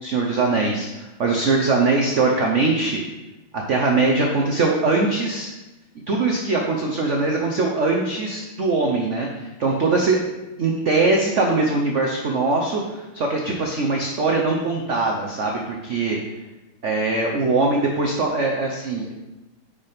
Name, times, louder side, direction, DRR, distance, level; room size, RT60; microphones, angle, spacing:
voice 1, 0.0-3.0 3.5-5.5 6.1-10.2 10.6-16.2 16.8-19.1, right 3 dB, 65° right, 0 dB, 0.7 m, -21 dB
9.8 x 5.3 x 3.5 m, 1.0 s
omnidirectional pair, 2.3 m